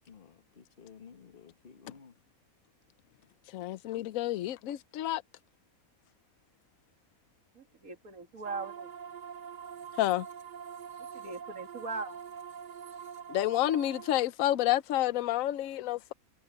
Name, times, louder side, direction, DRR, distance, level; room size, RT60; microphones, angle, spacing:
voice 1, 0.1-2.2, left 6 dB, 40° left, 1.6 m, -53 dB
voice 2, 3.5-5.2 10.0-10.3 13.3-16.1, left 13 dB, 75° left, 1.0 m, -29 dB
voice 3, 7.5-8.9 11.1-12.2, right 4 dB, 75° right, 2.7 m, -40 dB
sound 1, 8.4-14.3, right 7 dB, 45° right, 0.7 m, -44 dB
omnidirectional pair, 1.5 m